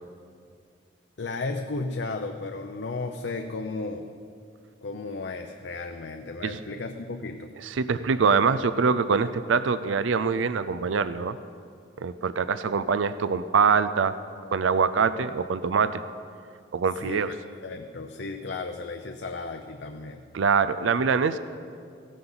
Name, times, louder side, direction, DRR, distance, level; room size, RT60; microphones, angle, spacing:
voice 1, 1.2-4.1 4.8-7.5 17.0-17.2 17.6-20.2, left 3 dB, 65° left, 5 dB, 0.6 m, -34 dB
voice 2, 7.6-11.4 12.0-14.1 14.5-16.0 16.7-17.3 20.3-21.4, right 5 dB, 85° right, 13 dB, 0.5 m, -24 dB
16.0 x 12.5 x 4.0 m, 2.3 s
head